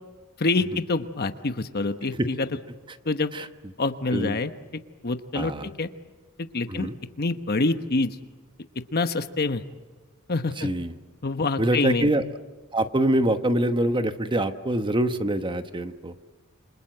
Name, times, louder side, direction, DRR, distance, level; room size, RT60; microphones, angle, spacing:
voice 1, 0.4-2.5 3.0-3.3 3.8-4.5 5.0-5.9 6.4-6.9 7.2-8.2 8.9-9.6 10.3-10.7 11.2-12.1, left 3 dB, 45° left, 9 dB, 1.1 m, -26 dB
voice 2, 5.3-5.7 6.7-6.9 10.6-10.9 11.6-12.2 12.7-16.1, right 1 dB, 20° right, 9 dB, 1.1 m, -25 dB
28.0 x 26.5 x 7.8 m, 1.3 s
head